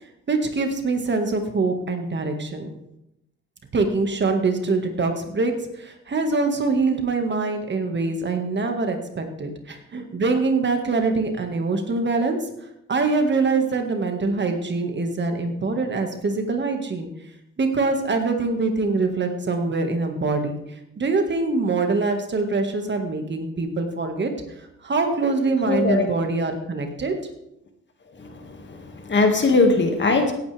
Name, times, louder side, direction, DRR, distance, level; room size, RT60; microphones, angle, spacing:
voice 1, 0.3-2.7 3.7-12.5 12.9-17.1 17.6-24.3 24.6-27.1, right 3 dB, 35° right, 5 dB, 1.8 m, -24 dB
voice 2, 25.5-26.1 28.1-30.3, left 3 dB, 40° left, 4 dB, 2.1 m, -21 dB
17.0 x 9.0 x 3.5 m, 0.84 s
cardioid pair, 90°, 30 cm